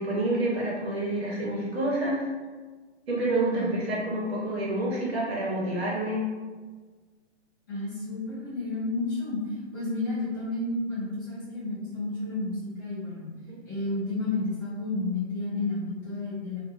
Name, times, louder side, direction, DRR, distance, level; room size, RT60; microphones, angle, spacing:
voice 1, 0.0-2.3 3.1-6.2 13.5-13.6, right 1 dB, 55° right, -5 dB, 1.0 m, -28 dB
voice 2, 7.7-13.3 13.6-16.6, left 2 dB, 15° left, -12 dB, 0.7 m, -31 dB
2.5 x 2.1 x 2.7 m, 1.4 s
hypercardioid pair, 180°, 36 cm